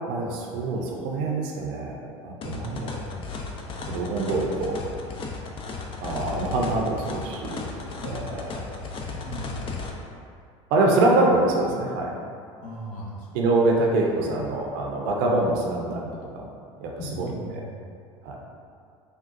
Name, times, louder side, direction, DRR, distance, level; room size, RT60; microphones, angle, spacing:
voice 1, 0.1-3.0 3.9-4.8 6.0-7.6 8.0-8.7 10.7-12.2 13.3-16.1 16.3-16.5 16.8-16.9 17.2-17.6 18.2-18.4, right 2 dB, 60° right, -1 dB, 0.5 m, -25 dB
voice 2, 2.4-3.2 8.0-8.5 9.1-9.7 12.6-13.3 17.0-17.9, equal, 55° left, -5 dB, 0.9 m, -38 dB
sound 1, 2.4-9.9, left 4 dB, 35° left, 0.4 m, -35 dB
3.6 x 2.3 x 2.5 m, 2.3 s
hypercardioid pair, 80°, 16 cm